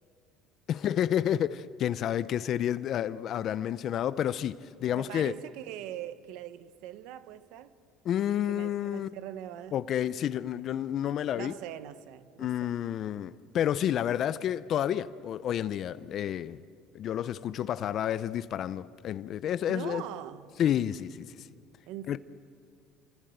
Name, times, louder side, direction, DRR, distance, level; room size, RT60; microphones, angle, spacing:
voice 1, 0.7-5.3 8.0-9.1 9.7-11.5 12.4-16.6 16.9-20.0 20.6-21.5 22.1-22.2, left 10 dB, 45° left, 0.6 m, -30 dB
voice 2, 4.9-7.7 8.5-9.8 11.3-12.7 19.7-20.5 21.9-22.2, right 12 dB, 75° right, 1.3 m, -42 dB
29.5 x 24.0 x 8.0 m
cardioid pair, 135°, 0 cm